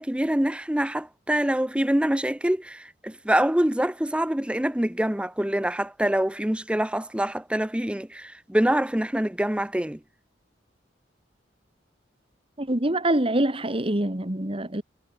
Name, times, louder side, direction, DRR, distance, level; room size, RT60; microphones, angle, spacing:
voice 1, 0.0-10.0, right 1 dB, 5° right, 0.7 m, -25 dB
voice 2, 12.6-14.8, right 1 dB, 30° right, 2.0 m, -25 dB
head